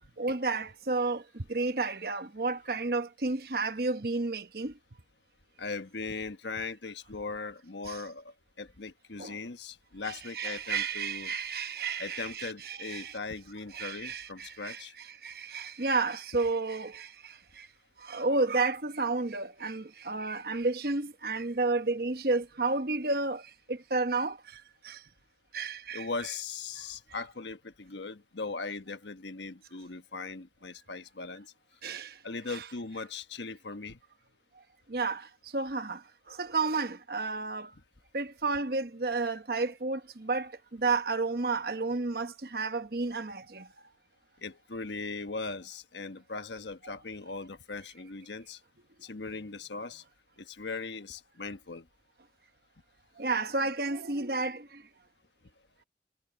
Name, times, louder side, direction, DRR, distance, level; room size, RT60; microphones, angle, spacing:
voice 1, 0.0-4.8 7.9-8.0 9.2-9.4 10.0-13.2 13.7-17.7 18.0-25.0 25.5-26.1 31.8-32.2 32.5-32.6 34.9-37.7 38.1-43.7 53.2-54.8, right 3 dB, 55° right, 1.0 m, -32 dB
voice 2, 5.6-11.3 12.0-14.9 22.0-22.1 25.9-31.5 32.2-34.0 44.4-48.6 49.0-50.0 50.4-51.9, left 4 dB, 80° left, 1.2 m, -39 dB
head